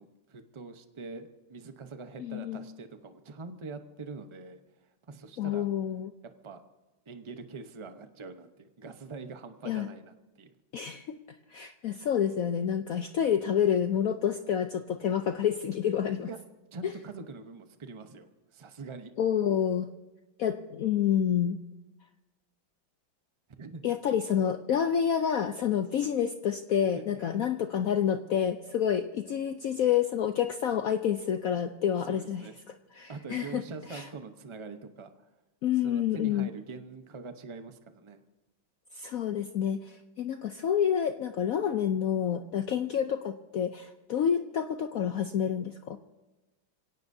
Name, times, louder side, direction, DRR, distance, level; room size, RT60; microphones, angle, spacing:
voice 1, 0.0-5.7 6.4-6.6 7.1-10.5 16.3-16.4 16.7-19.1 23.6-23.8 26.9-27.5 32.0-32.5 33.1-35.3 35.8-38.2, right 4 dB, 40° right, 7 dB, 0.4 m, -44 dB
voice 2, 2.2-2.6 5.4-6.1 9.6-9.9 10.7-11.2 11.5-16.3 16.8-16.9 19.2-19.9 20.4-21.6 23.8-32.5 32.9-33.6 33.9-34.1 35.6-36.5 38.9-46.0, left 9 dB, 70° left, 8 dB, 0.8 m, -28 dB
27.5 x 17.0 x 2.7 m, 1.1 s
omnidirectional pair, 2.1 m